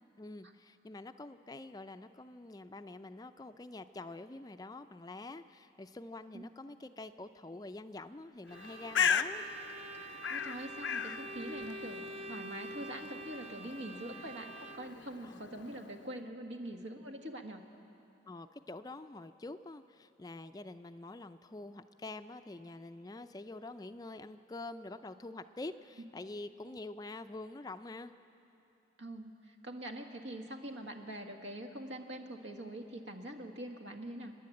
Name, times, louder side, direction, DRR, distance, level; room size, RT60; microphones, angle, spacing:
voice 1, 0.2-9.5 15.2-15.4 18.3-28.1, left 2 dB, 20° left, 10 dB, 0.4 m, -46 dB
Bird, 8.5-16.1, left 7 dB, 85° left, 0.6 m, -38 dB
Bowed string instrument, 8.5-15.1, right 2 dB, 30° right, 0.7 m, -47 dB
voice 2, 10.3-17.6 29.0-34.3, right 1 dB, 80° right, 3 dB, 1.7 m, -44 dB
29.0 x 10.5 x 8.5 m, 2.8 s
head